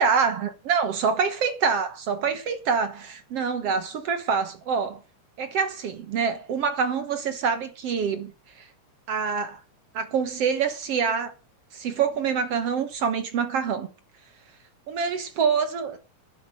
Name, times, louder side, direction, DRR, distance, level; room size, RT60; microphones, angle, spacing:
voice 1, 0.0-5.0 5.4-8.7 9.1-9.6 9.9-11.3 11.7-13.9 14.9-16.0, right 6 dB, 60° right, 2.1 m, -26 dB
11.5 x 10.5 x 6.6 m
omnidirectional pair, 3.6 m